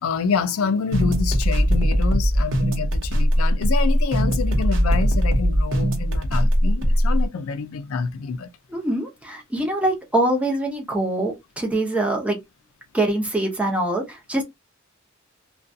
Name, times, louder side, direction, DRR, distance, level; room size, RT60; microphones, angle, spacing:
voice 1, 0.0-8.5, left 5 dB, 75° left, 0.4 m, -27 dB
sound 1, 0.9-7.2, equal, 65° right, 0.8 m, -20 dB
voice 2, 8.7-12.4 12.9-14.4, right 1 dB, 5° right, 0.7 m, -24 dB
2.5 x 2.2 x 2.6 m
head